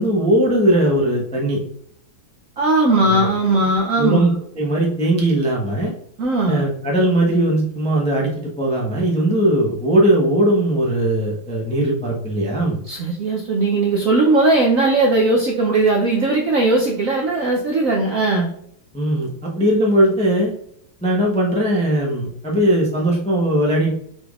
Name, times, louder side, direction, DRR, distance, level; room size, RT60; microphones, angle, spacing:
voice 1, 0.0-1.6 3.0-3.4 4.0-5.9 6.5-8.3 8.6-12.8 18.9-20.5 21.0-23.9, right 1 dB, 10° left, -3 dB, 0.3 m, -19 dB
voice 2, 2.6-4.3 6.2-6.6 12.9-18.5, right 2 dB, 70° right, 0 dB, 0.7 m, -18 dB
5.8 x 3.5 x 2.4 m, 0.68 s
omnidirectional pair, 2.3 m